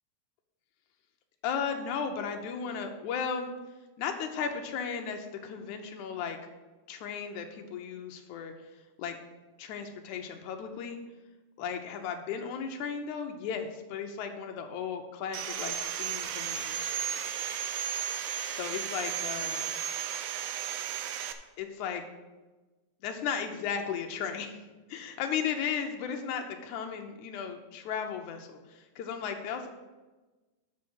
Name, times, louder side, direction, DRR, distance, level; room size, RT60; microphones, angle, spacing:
voice 1, 1.4-3.5 4.0-6.4 6.9-8.5 9.0-9.2 9.6-11.0 11.6-17.0 18.5-19.7 21.6-22.0 23.0-24.5 24.9-29.7, left 7 dB, 75° left, 5 dB, 1.9 m, -35 dB
Sawing, 15.3-21.3, right 9 dB, 80° right, 1.8 m, -34 dB
8.4 x 5.5 x 6.1 m, 1.2 s
omnidirectional pair, 4.0 m